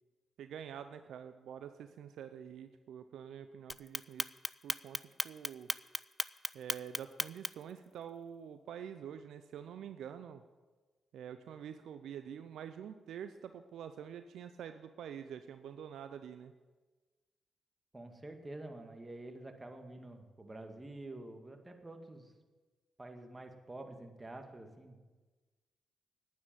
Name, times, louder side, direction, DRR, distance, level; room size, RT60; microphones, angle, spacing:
voice 1, 0.4-4.3 4.6-5.7 6.5-10.4 11.1-16.5, right 8 dB, 75° right, 9 dB, 0.5 m, -47 dB
Clock, 3.7-7.7, left 2 dB, 20° left, 0.5 m, -36 dB
voice 2, 17.9-22.3 23.0-25.2, right 2 dB, 25° right, 5 dB, 2.0 m, -48 dB
10.5 x 9.3 x 7.4 m, 1.3 s
hypercardioid pair, 40°, 0 cm